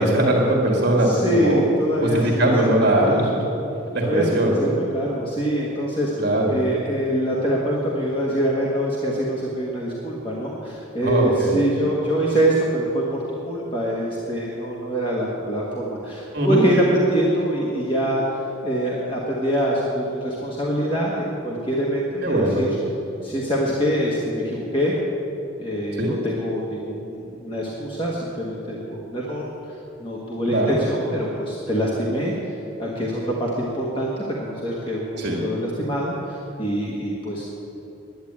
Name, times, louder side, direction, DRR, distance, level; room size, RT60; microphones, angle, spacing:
voice 1, 0.0-1.6 2.0-3.4 3.9-4.7 6.2-6.6 11.0-11.6 16.3-16.6 22.2-22.6 26.0-26.1 30.5-30.8 35.2-35.4, right 1 dB, 50° right, -1 dB, 1.7 m, -20 dB
voice 2, 0.9-3.4 4.0-6.1 6.5-13.2 13.5-22.7 23.2-25.0 25.6-32.5 32.8-37.5, equal, 25° left, -4 dB, 1.4 m, -25 dB
11.0 x 9.5 x 8.6 m, 3.0 s
head